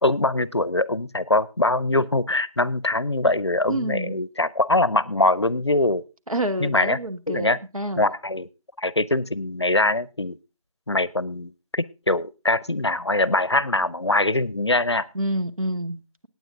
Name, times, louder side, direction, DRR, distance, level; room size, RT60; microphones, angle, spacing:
voice 1, 0.0-6.0 6.6-7.0 7.3-7.6 8.0-8.5 8.8-10.4 10.9-15.1, left 2 dB, 50° left, 21 dB, 0.6 m, -23 dB
voice 2, 3.7-4.2 6.3-8.1 15.1-16.3, right 1 dB, 75° right, 10 dB, 1.4 m, -28 dB
17.5 x 9.1 x 3.7 m, 0.30 s
figure-of-eight pair, 170°, 18 cm